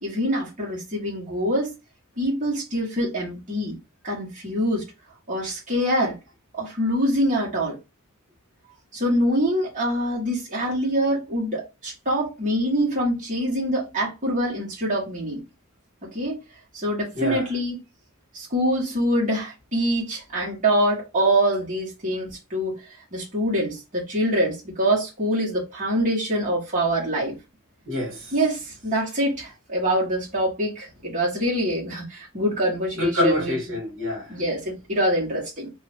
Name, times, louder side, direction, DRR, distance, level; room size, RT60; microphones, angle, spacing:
voice 1, 0.0-1.7 2.2-3.8 4.0-4.9 5.3-6.2 6.5-7.8 8.9-15.4 16.0-16.4 16.7-17.8 18.3-22.8 23.1-27.3 28.3-33.5 34.3-35.7, equal, 35° right, 1.5 m, -25 dB
voice 2, 17.1-17.5 27.9-28.3 33.0-34.4, left 1 dB, 60° right, 1.5 m, -26 dB
2.9 x 2.4 x 4.1 m
head